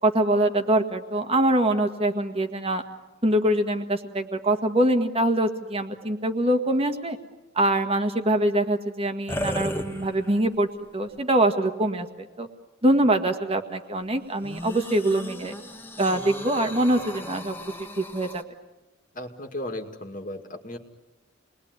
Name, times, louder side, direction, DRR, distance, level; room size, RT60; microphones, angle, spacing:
voice 1, 0.0-2.8 3.2-7.2 7.5-12.5 12.8-15.5 16.0-17.5 18.0-18.4, right 1 dB, 30° right, 5 dB, 1.7 m, -24 dB
sound 1, 9.3-10.5 11.2-11.3 14.4-18.4, left 1 dB, 10° left, 1.7 m, -35 dB
voice 2, 19.2-20.8, left 1 dB, 40° left, 5 dB, 2.2 m, -35 dB
29.0 x 21.0 x 9.6 m, 1.1 s
head